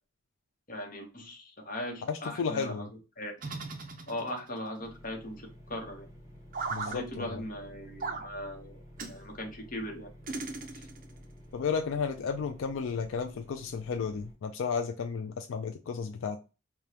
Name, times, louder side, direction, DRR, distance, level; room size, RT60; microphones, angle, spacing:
voice 1, 0.7-2.7 3.2-3.3 4.1-5.4 5.7-6.1 6.9-8.8 9.1-10.1 10.7-10.8, left 1 dB, 40° left, 3 dB, 0.9 m, -39 dB
voice 2, 2.0-2.9 6.7-7.4 11.5-16.4, left 5 dB, 75° left, 5 dB, 0.4 m, -33 dB
sound 1, 3.4-4.6 6.5-7.0 8.0-8.3 9.0-9.2 10.3-11.1, right 4 dB, 40° right, 0.5 m, -37 dB
sound 2, 4.8-14.3, equal, 15° right, 0.9 m, -52 dB
4.9 x 2.3 x 2.8 m, 0.31 s
head